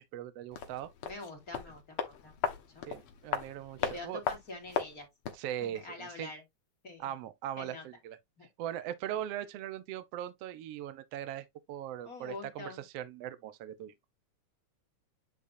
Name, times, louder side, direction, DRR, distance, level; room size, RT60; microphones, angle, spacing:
voice 1, 0.0-0.9 2.9-4.2 5.3-6.3 7.0-8.2 8.6-13.9, right 11 dB, 65° right, 1.7 m, -40 dB
sound 1, 0.5-5.5 5.8-5.9, left 7 dB, 55° left, 1.7 m, -37 dB
voice 2, 1.0-2.3 2.7-2.8 3.8-5.1 5.6-6.4 6.8-7.1 7.6-7.8 8.4-8.5 12.0-12.8, left 2 dB, 30° left, 3.1 m, -45 dB
9.9 x 4.1 x 2.7 m
omnidirectional pair, 3.7 m